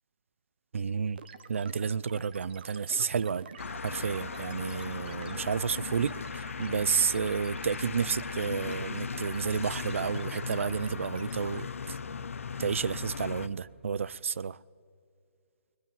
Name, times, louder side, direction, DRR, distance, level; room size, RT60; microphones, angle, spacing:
voice 1, 0.7-1.2 1.5-3.5 3.8-12.0 12.6-14.6, right 6 dB, 70° right, 0.5 m, -31 dB
sound 1, 1.2-11.6, right 6 dB, 45° right, 1.2 m, -48 dB
sound 2, 3.6-13.5, left 5 dB, 80° left, 1.0 m, -38 dB
21.5 x 20.5 x 7.4 m
hypercardioid pair, 165°, 7 cm